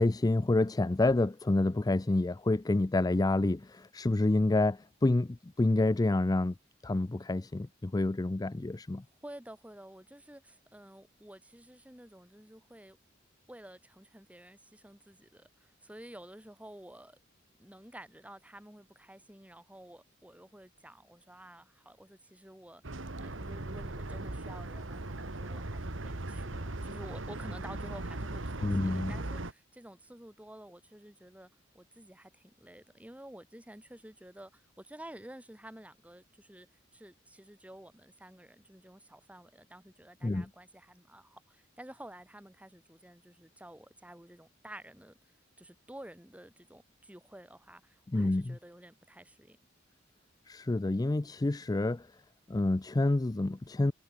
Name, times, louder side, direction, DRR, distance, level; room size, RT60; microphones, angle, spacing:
voice 1, 0.0-6.5 6.8-9.0 28.6-29.1 40.2-40.5 48.1-48.6 50.5-52.1 52.5-53.9, left 2 dB, 20° left, 0.4 m, -28 dB
voice 2, 9.2-13.0 13.5-17.2 17.6-31.5 31.7-36.7 36.9-49.6, right 1 dB, 5° right, 2.5 m, -51 dB
sound 1, 22.8-29.5, right 2 dB, 75° right, 1.9 m, -39 dB
head